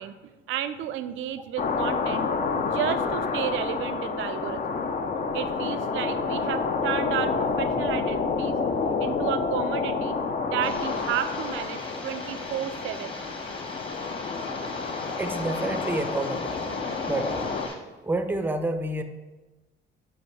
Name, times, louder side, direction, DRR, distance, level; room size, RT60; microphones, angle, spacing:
voice 1, 0.0-2.3 2.6-4.6 5.3-8.5 9.0-10.2 10.5-13.1, right 11 dB, 80° right, 11 dB, 0.4 m, -32 dB
sound 1, 1.6-17.7, left 4 dB, 40° left, 0.5 m, -29 dB
sound 2, 10.6-17.7, left 2 dB, 25° left, 1.2 m, -40 dB
voice 2, 15.2-16.7 17.1-17.5 18.0-19.0, right 2 dB, 10° right, 8 dB, 0.5 m, -29 dB
7.8 x 2.7 x 4.6 m, 1.1 s
cardioid pair, 90°, 20 cm